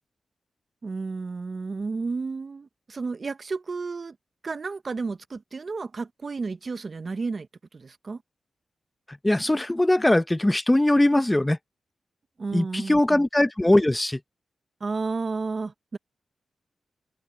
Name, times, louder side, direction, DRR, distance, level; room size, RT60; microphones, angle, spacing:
voice 1, 0.8-4.2 4.4-7.5 7.7-8.2 12.4-13.2 14.8-16.0, right 4 dB, 45° right, 0.7 m, -32 dB
voice 2, 9.1-11.6 12.5-14.2, left 1 dB, 10° left, 0.6 m, -21 dB
wide cardioid pair, 110°, 0 cm